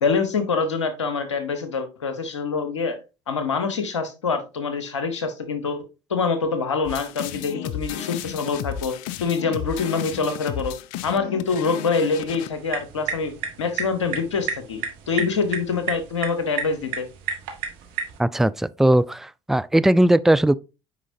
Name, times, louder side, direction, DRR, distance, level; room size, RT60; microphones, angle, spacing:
voice 1, 0.0-3.0 3.3-5.8 6.1-10.7 11.0-17.1, left 5 dB, 90° left, 1.0 m, -25 dB
sound 1, 6.9-12.5, left 11 dB, 65° left, 0.5 m, -33 dB
sound 2, 12.5-18.2, right 6 dB, 70° right, 1.4 m, -32 dB
voice 2, 18.2-20.6, right 1 dB, ahead, 0.3 m, -18 dB
8.4 x 5.0 x 2.7 m
hypercardioid pair, 60°, 15 cm